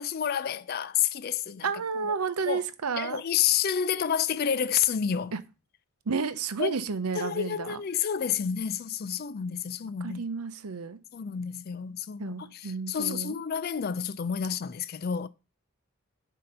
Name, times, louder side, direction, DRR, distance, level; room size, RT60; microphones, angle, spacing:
voice 1, 0.0-1.7 2.0-2.1 2.5-2.6 3.0-5.3 6.6-6.8 7.2-10.2 11.1-15.3, left 8 dB, 45° left, 0.3 m, -29 dB
voice 2, 1.6-3.2 5.3-5.4 6.1-7.8 10.0-11.0 12.2-13.4, right 5 dB, 90° right, 0.7 m, -31 dB
7.6 x 2.8 x 5.4 m
head